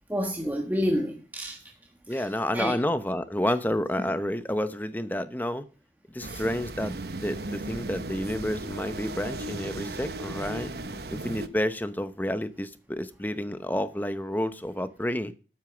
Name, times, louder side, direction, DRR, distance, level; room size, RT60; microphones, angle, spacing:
voice 1, 0.1-1.6 2.1-2.3 2.5-2.8 6.3-6.4, equal, 10° right, 1.3 m, -29 dB
voice 2, 2.1-5.6 6.1-7.0 7.2-10.7 11.1-15.3, left 1 dB, 10° left, 0.9 m, -30 dB
sound 1, 6.2-11.5, right 2 dB, 65° right, 1.0 m, -36 dB
13.0 x 9.1 x 5.1 m
head